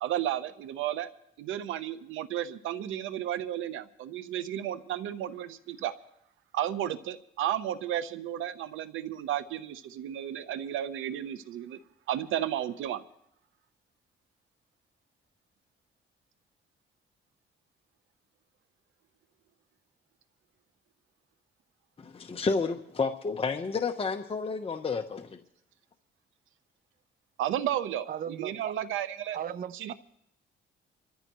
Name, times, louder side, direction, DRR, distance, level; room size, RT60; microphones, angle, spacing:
voice 1, 0.0-1.1 1.4-5.9 6.5-11.8 12.1-13.0 27.4-29.4 29.7-29.9, right 11 dB, 90° right, 12 dB, 0.9 m, -33 dB
voice 2, 22.0-25.4, left 4 dB, 30° left, 5 dB, 1.0 m, -31 dB
voice 3, 28.1-28.7 29.3-29.9, right 9 dB, 45° right, 16 dB, 0.6 m, -37 dB
25.5 x 14.0 x 3.1 m, 0.78 s
cardioid pair, 90°, 20 cm